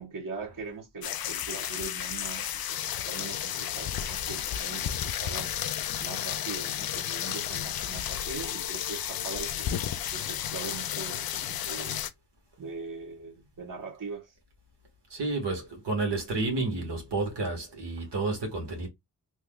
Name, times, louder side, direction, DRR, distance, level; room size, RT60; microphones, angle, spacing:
voice 1, 0.0-5.5 6.0-12.0 12.6-14.4, right 4 dB, 50° right, 1.4 m, -41 dB
sound 1, 1.0-12.1, left 10 dB, 60° left, 0.5 m, -32 dB
voice 2, 15.1-18.9, right 3 dB, 75° right, 1.6 m, -30 dB
3.4 x 3.0 x 2.3 m
cardioid pair, 55°, 42 cm